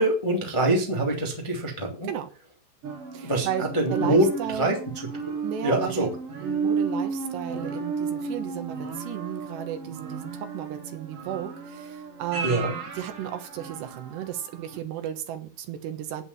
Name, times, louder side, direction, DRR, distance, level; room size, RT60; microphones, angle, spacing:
voice 1, 0.0-2.1 3.2-4.3 4.5-4.7 5.6-6.1 12.4-12.7, right 1 dB, 10° left, 0 dB, 1.4 m, -24 dB
sound 1, 2.8-14.3 14.7-14.8, right 5 dB, 45° right, 2.1 m, -33 dB
voice 2, 3.1-4.7 5.4-6.1 6.4-16.2, right 10 dB, 70° right, 8 dB, 3.1 m, -34 dB
9.4 x 8.5 x 7.2 m, 0.38 s
omnidirectional pair, 5.3 m